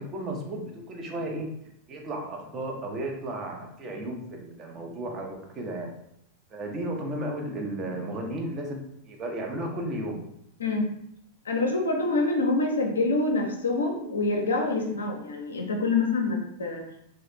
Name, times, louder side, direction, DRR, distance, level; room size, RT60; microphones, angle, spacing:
voice 1, 0.0-1.5 1.9-5.9 6.5-10.2, right 1 dB, 25° right, 1 dB, 0.6 m, -34 dB
voice 2, 11.4-16.9, left 3 dB, 70° left, 2 dB, 0.5 m, -26 dB
3.1 x 2.0 x 2.8 m, 0.76 s
figure-of-eight pair, 90°, 0 cm